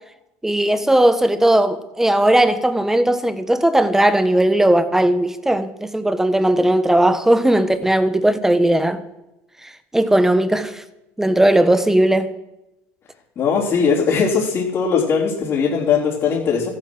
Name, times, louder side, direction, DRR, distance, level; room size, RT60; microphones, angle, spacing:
voice 1, 0.4-9.0 9.9-10.8 11.2-12.3, right 1 dB, 5° right, 1.2 m, -17 dB
voice 2, 13.4-16.7, left 6 dB, 45° left, 3.7 m, -19 dB
14.5 x 11.0 x 6.3 m
supercardioid pair, 105°, 7 cm